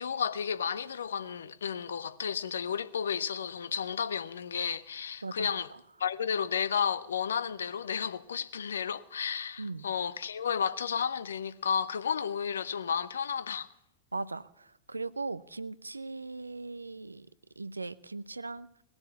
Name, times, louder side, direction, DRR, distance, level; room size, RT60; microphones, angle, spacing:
voice 1, 0.0-5.7 6.0-13.7, left 7 dB, 70° left, 0.6 m, -32 dB
voice 2, 5.2-5.6 9.6-9.9 14.1-17.3 17.6-18.7, right 3 dB, 80° right, 0.5 m, -39 dB
19.0 x 7.1 x 9.3 m
figure-of-eight pair, 90°, 0 cm